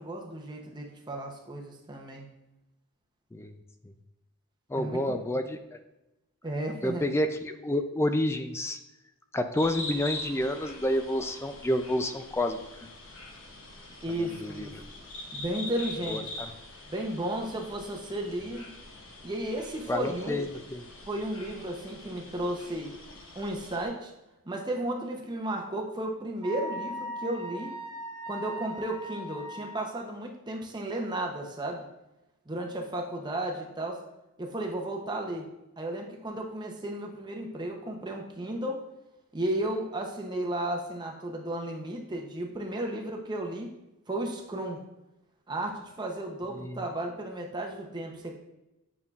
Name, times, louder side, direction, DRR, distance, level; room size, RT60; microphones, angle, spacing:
voice 1, 0.0-2.3 4.7-5.4 6.4-7.1 14.0-14.7 15.3-16.2 16.9-18.7 19.2-20.4 21.1-22.9 23.4-24.1 24.5-27.7 28.3-31.9 32.5-34.0 34.4-35.5 35.8-38.8 39.3-43.7 44.1-44.8 45.5-48.3, right 1 dB, 20° right, 1 dB, 0.7 m, -34 dB
voice 2, 4.7-5.8 6.8-8.8 9.3-12.9 14.1-14.7 16.1-16.5 19.9-20.9 46.5-46.8, left 1 dB, 10° left, 8 dB, 0.3 m, -29 dB
sound 1, 9.6-23.9, left 2 dB, 65° left, 1.1 m, -43 dB
Wind instrument woodwind instrument, 26.4-29.9, equal, 90° right, 1.9 m, -39 dB
8.9 x 5.4 x 2.4 m, 0.96 s
head